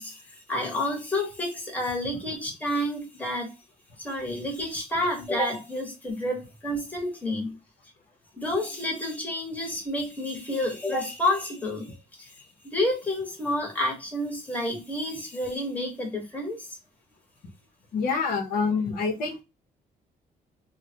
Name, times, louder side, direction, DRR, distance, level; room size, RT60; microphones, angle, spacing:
voice 1, 0.0-3.5 4.0-7.5 8.4-16.7, left 1 dB, 10° left, 1.1 m, -30 dB
voice 2, 17.9-19.4, left 4 dB, 75° left, 0.9 m, -26 dB
3.2 x 2.2 x 2.7 m
cardioid pair, 135°, 15 cm